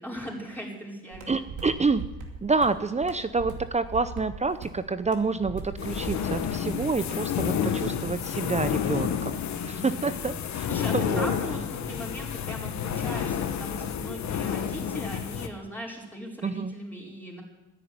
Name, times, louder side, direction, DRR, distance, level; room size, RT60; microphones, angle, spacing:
voice 1, 0.0-1.4 9.7-10.3 10.7-17.4, equal, 5° left, -3 dB, 5.1 m, -39 dB
sound 1, 1.1-7.0, right 5 dB, 80° right, 2.6 m, -40 dB
voice 2, 1.3-2.0 2.4-9.4 9.7-10.7 10.9-11.3 16.4-16.7, right 4 dB, 20° right, 12 dB, 0.7 m, -28 dB
sound 2, 5.8-15.5, left 8 dB, 65° left, 1.3 m, -30 dB
13.5 x 10.0 x 9.5 m, 1.0 s
cardioid pair, 90°, 30 cm